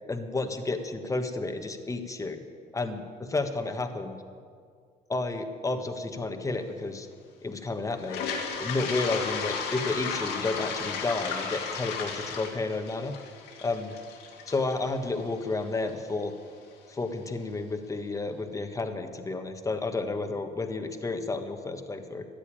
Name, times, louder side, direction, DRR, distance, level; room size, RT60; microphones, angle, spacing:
voice 1, 0.1-2.4 2.7-4.2 5.1-7.1 7.4-8.2 8.6-13.1 13.6-13.9 14.5-16.3 16.9-22.3, left 3 dB, 20° left, 7 dB, 1.4 m, -31 dB
Toilet flush, 8.0-15.9, left 6 dB, 85° left, 2.2 m, -34 dB
14.0 x 11.0 x 8.8 m, 2.1 s
cardioid pair, 110°, 17 cm